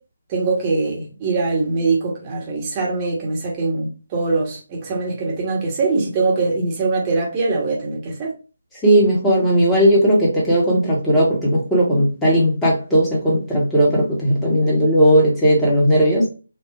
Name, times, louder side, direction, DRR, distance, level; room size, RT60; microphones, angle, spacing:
voice 1, 0.3-8.3, right 3 dB, 20° right, 1.1 m, -22 dB
voice 2, 8.8-16.2, equal, 5° left, 1.2 m, -16 dB
4.5 x 2.3 x 2.4 m
figure-of-eight pair, 150°, 0 cm